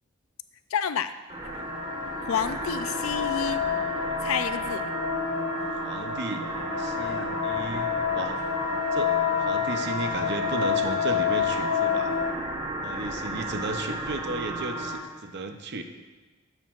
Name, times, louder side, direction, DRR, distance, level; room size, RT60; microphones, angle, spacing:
voice 1, 0.7-1.1 1.5-1.6 2.3-3.6 4.2-4.8, left 7 dB, 85° left, 12 dB, 0.4 m, -29 dB
sound 1, 1.3-15.0, right 2 dB, 25° right, 1.1 m, -34 dB
sound 2, 1.4-12.3, left 8 dB, 65° left, 0.8 m, -29 dB
voice 2, 5.8-6.5 6.8-8.4 8.9-12.1 12.8-15.8, right 2 dB, 55° right, 6 dB, 0.7 m, -34 dB
11.5 x 6.6 x 2.5 m, 1.3 s
head